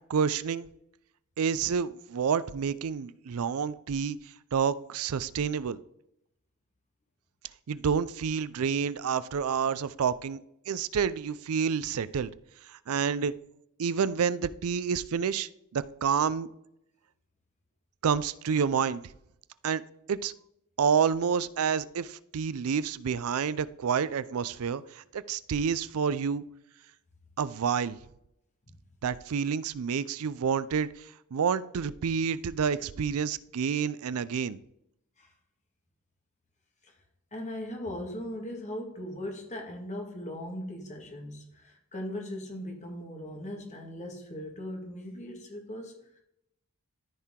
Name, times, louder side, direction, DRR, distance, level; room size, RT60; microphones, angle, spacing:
voice 1, 0.1-0.7 1.4-4.2 4.5-5.8 7.7-10.4 10.7-12.3 12.7-13.3 13.8-16.5 18.0-19.0 19.6-19.8 20.1-20.3 20.8-26.4 27.4-28.0 29.0-30.9 31.3-34.6, right 6 dB, 70° right, 17 dB, 0.4 m, -29 dB
voice 2, 37.3-46.2, left 1 dB, 30° left, 2 dB, 1.8 m, -39 dB
13.5 x 4.6 x 3.7 m, 0.78 s
head